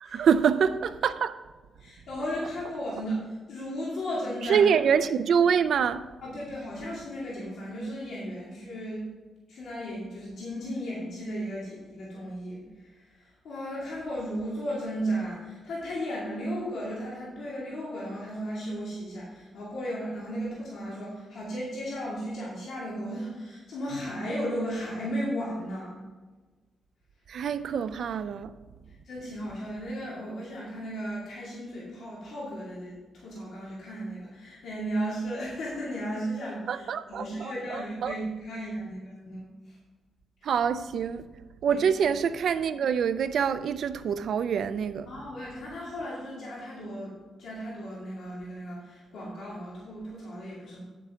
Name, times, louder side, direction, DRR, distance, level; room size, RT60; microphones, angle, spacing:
voice 1, 0.0-1.4 4.5-6.1 27.3-28.5 36.7-38.1 40.4-41.3 41.6-45.1, right 7 dB, 55° right, 0.4 m, -25 dB
voice 2, 1.8-4.7 6.2-9.1 9.5-26.0 28.9-39.8 40.4-40.6 41.7-41.8 45.1-50.8, equal, 65° left, 2.4 m, -35 dB
9.0 x 7.7 x 3.7 m
wide cardioid pair, 180°, 0 cm